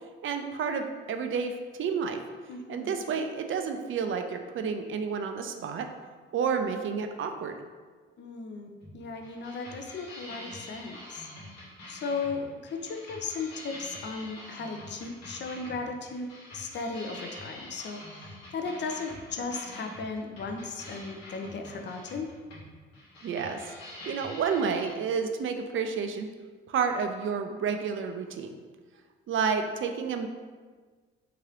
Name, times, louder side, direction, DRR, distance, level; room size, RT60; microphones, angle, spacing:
voice 1, 0.2-2.2 2.7-5.9 6.3-7.5 23.2-23.7 24.1-26.3 26.7-28.5 29.3-30.3, right 6 dB, 40° right, 6 dB, 0.5 m, -30 dB
voice 2, 2.5-3.1 8.2-8.7 8.9-11.3 11.9-22.3, left 4 dB, 35° left, 5 dB, 0.5 m, -36 dB
sound 1, 8.8-24.9, left 1 dB, 85° left, 0.9 m, -46 dB
3.6 x 2.9 x 3.0 m, 1.5 s
hypercardioid pair, 45°, 31 cm